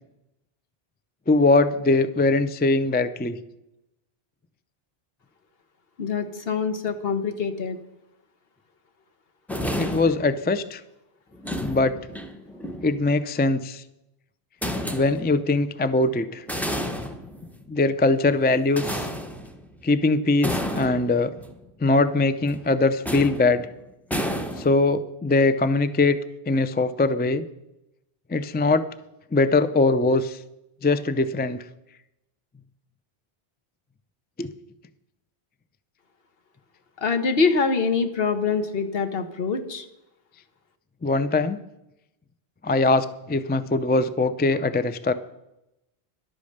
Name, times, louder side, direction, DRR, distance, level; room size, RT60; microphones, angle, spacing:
voice 1, 1.3-3.4 9.8-10.8 11.6-11.9 12.8-13.8 14.9-16.4 17.7-19.1 19.8-21.3 21.8-23.7 24.6-26.2 26.5-27.5 28.3-28.8 29.3-30.4 30.8-31.6 34.4-34.5 41.0-41.6 42.6-45.1, left 2 dB, 15° left, 12 dB, 0.3 m, -21 dB
voice 2, 6.0-7.8 37.0-39.8, left 5 dB, 65° left, 9 dB, 1.3 m, -24 dB
sound 1, 9.5-10.4 11.3-13.0 14.6-15.4 16.3-17.8 18.7-19.8 20.4-21.6 22.5-22.7 23.0-23.7 24.1-24.9, equal, ahead, 1.0 m, -31 dB
11.5 x 8.6 x 6.5 m, 0.88 s
omnidirectional pair, 1.1 m